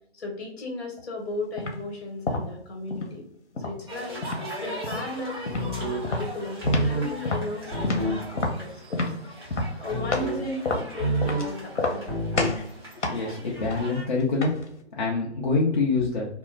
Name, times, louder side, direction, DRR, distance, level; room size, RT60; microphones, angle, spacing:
voice 1, 0.2-3.2 3.6-4.3 4.6-9.0 9.8-12.2, left 2 dB, 65° left, 1 dB, 1.1 m, -35 dB
sound 1, 1.6-1.8 2.3-3.2 3.6-4.5 4.8-5.1 5.5-5.7 6.0-7.0 7.3-10.4 10.6-11.5 11.7-12.1 12.4-12.7 13.0-14.7, left 2 dB, 90° left, 0.7 m, -29 dB
sound 2, 3.9-14.0, right 1 dB, 25° right, 0.7 m, -40 dB
sound 3, 5.5-6.0 6.6-7.1 7.7-8.2 9.9-10.4 11.0-11.5 12.1-12.6, right 1 dB, 10° left, 1.0 m, -27 dB
voice 2, 13.1-14.6 15.0-16.3, left 3 dB, 45° left, -4 dB, 0.5 m, -25 dB
2.4 x 2.0 x 3.2 m, 0.68 s
figure-of-eight pair, 155°, 34 cm